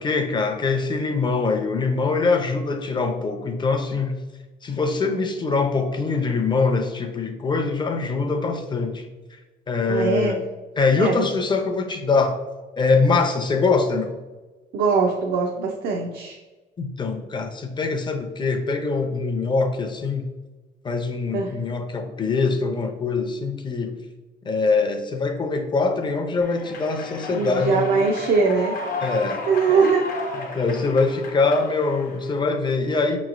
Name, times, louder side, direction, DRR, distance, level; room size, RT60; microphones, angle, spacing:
voice 1, 0.0-4.2 4.6-9.0 9.7-10.4 10.8-12.4 12.8-14.2 16.8-20.2 20.8-23.9 24.5-28.1 29.0-29.4 29.7-29.9 30.4-33.2, left 4 dB, 25° left, 6 dB, 0.5 m, -23 dB
voice 2, 9.9-10.4 11.0-11.3 14.7-16.4 21.3-21.6 27.3-28.8 29.5-30.1, right 5 dB, 70° right, 0 dB, 0.5 m, -21 dB
Human voice / Clapping / Cheering, 26.4-32.4, left 3 dB, 55° left, 0.7 m, -33 dB
5.0 x 3.1 x 2.5 m, 1.2 s
cardioid pair, 110°, 17 cm